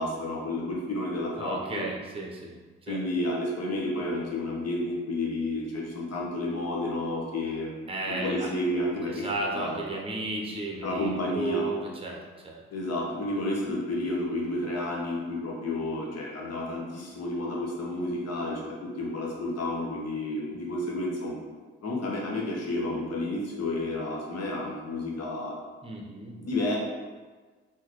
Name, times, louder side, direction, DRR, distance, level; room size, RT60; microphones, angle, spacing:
voice 1, 0.0-1.9 2.9-7.7 8.1-9.8 10.8-11.7 12.7-21.4 21.8-25.6 26.4-26.8, left 1 dB, 55° left, -2 dB, 1.1 m, -31 dB
voice 2, 1.4-2.6 2.9-3.0 7.9-8.5 9.1-12.6 25.8-26.4, right 2 dB, 15° right, -1 dB, 0.9 m, -34 dB
3.8 x 2.9 x 3.1 m, 1.4 s
hypercardioid pair, 50°, 31 cm